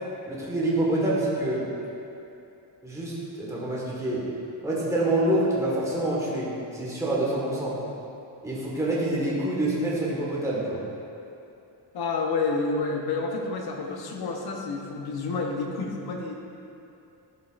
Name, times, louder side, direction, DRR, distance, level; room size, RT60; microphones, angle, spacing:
voice 1, 0.3-1.7 2.8-4.3 4.6-7.8 8.4-10.8, right 1 dB, 10° right, -7 dB, 1.5 m, -26 dB
voice 2, 11.9-16.3, left 3 dB, 65° left, 1 dB, 1.0 m, -29 dB
12.0 x 5.4 x 2.5 m, 2.7 s
cardioid pair, 140°, 41 cm